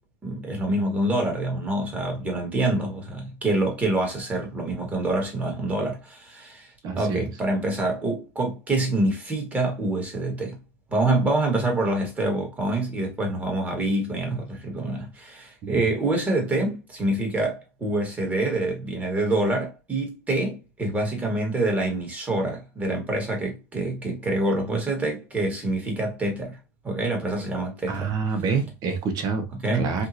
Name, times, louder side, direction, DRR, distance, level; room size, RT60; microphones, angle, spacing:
voice 1, 0.2-10.6 10.9-26.6 26.8-28.1 29.5-30.1, right 2 dB, 15° right, 1.6 m, -26 dB
voice 2, 6.8-7.3 15.6-15.8 27.9-30.1, right 5 dB, 45° right, 1.0 m, -27 dB
3.6 x 2.5 x 2.7 m
supercardioid pair, 120°, 9 cm